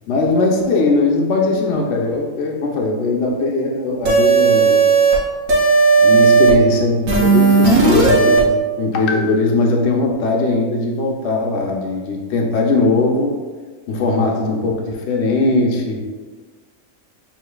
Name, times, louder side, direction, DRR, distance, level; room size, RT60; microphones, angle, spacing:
voice 1, 0.0-4.8 6.0-13.4 13.9-16.0, left 3 dB, 65° left, 0 dB, 0.8 m, -19 dB
sound 1, 4.0-5.2 5.5-6.5 7.1-8.4, right 4 dB, 80° right, 1.2 m, -13 dB
6.5 x 3.2 x 2.2 m, 1.4 s
omnidirectional pair, 1.4 m